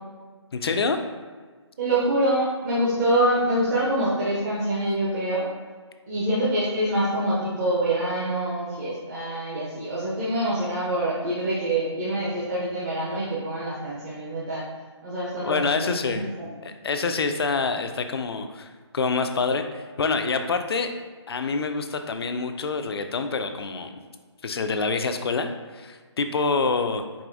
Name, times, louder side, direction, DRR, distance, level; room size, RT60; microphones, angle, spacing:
voice 1, 0.5-1.0 15.4-16.2 16.6-20.9 21.3-24.0 24.4-27.0, left 4 dB, 55° left, 7 dB, 0.4 m, -26 dB
voice 2, 1.8-5.5 6.1-14.6 15.0-16.5, right 1 dB, 35° right, -8 dB, 0.8 m, -25 dB
4.8 x 2.7 x 2.6 m, 1.5 s
figure-of-eight pair, 150°, 15 cm